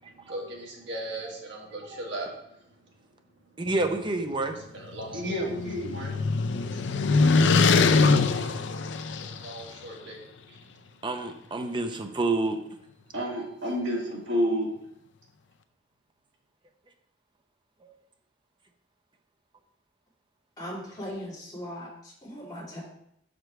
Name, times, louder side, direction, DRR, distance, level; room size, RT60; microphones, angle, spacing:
voice 1, 0.1-2.3 3.6-3.7 4.7-6.1 6.7-6.8 9.2-10.2 10.5-10.6 13.1-14.7, equal, 75° right, -1 dB, 1.8 m, -32 dB
voice 2, 3.6-4.6 8.4-8.5 11.0-12.6 17.8-17.9, right 2 dB, 25° right, 5 dB, 0.7 m, -28 dB
sound 1, 4.9-9.6, left 4 dB, 75° left, 0.4 m, -23 dB
voice 3, 20.6-22.8, equal, 20° left, -7 dB, 2.6 m, -39 dB
6.1 x 5.1 x 4.5 m, 0.76 s
head